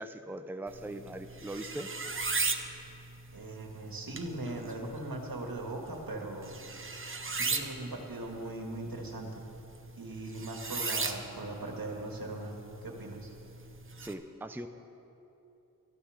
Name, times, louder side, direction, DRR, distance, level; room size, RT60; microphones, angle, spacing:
voice 1, 0.0-1.9 14.0-14.7, right 1 dB, 5° right, 7 dB, 0.6 m, -40 dB
sound 1, 0.7-14.1, right 4 dB, 35° right, 0.9 m, -38 dB
voice 2, 3.3-6.5 7.3-9.3 10.0-12.5 12.8-13.3, right 2 dB, 80° right, 1 dB, 1.9 m, -39 dB
14.0 x 9.8 x 6.6 m, 3.0 s
wide cardioid pair, 60°, 35 cm